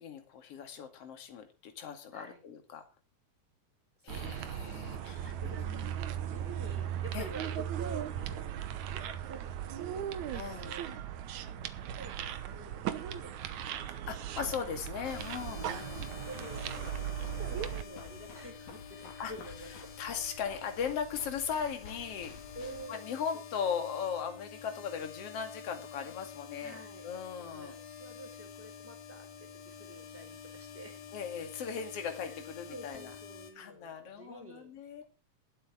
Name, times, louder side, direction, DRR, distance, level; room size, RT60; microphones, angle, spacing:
voice 1, 0.0-2.8 4.0-5.9 7.1-7.3 10.3-10.7 13.9-16.1 19.2-19.3 20.0-22.4 22.9-27.7 31.1-33.1 33.6-35.1, left 7 dB, 50° left, 6 dB, 2.9 m, -38 dB
voice 2, 4.0-8.5 8.8-10.0 10.4-10.9 12.0-14.2 15.4-15.7 16.2-19.7 20.3-20.4 22.5-23.4 26.6-27.1 27.4-29.3 29.6-31.0 31.9-32.4 32.7-35.1, right 1 dB, 5° right, 3 dB, 4.0 m, -49 dB
sound 1, 4.1-17.8, right 10 dB, 65° right, 2.2 m, -38 dB
sound 2, 15.1-33.5, left 7 dB, 90° left, 3.9 m, -49 dB
sound 3, 16.7-22.9, left 4 dB, 65° left, 4.2 m, -51 dB
19.5 x 8.2 x 4.8 m, 0.32 s
omnidirectional pair, 3.9 m